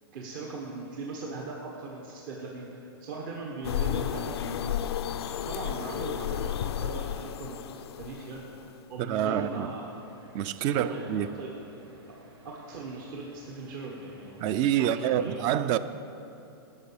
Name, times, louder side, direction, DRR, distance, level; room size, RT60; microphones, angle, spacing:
voice 1, 0.1-4.8 5.4-8.6 8.9-9.9 10.6-11.5 11.7-11.9 12.4-15.4, right 3 dB, 55° right, 1.4 m, -39 dB
sound 1, 3.6-8.7, left 10 dB, 90° left, 0.4 m, -32 dB
voice 2, 9.1-9.7 10.3-11.3 14.4-15.8, right 11 dB, 35° right, 0.4 m, -27 dB
sound 2, 9.1-14.6, right 1 dB, 85° right, 2.0 m, -55 dB
11.5 x 6.0 x 7.1 m
hypercardioid pair, 145°, 13 cm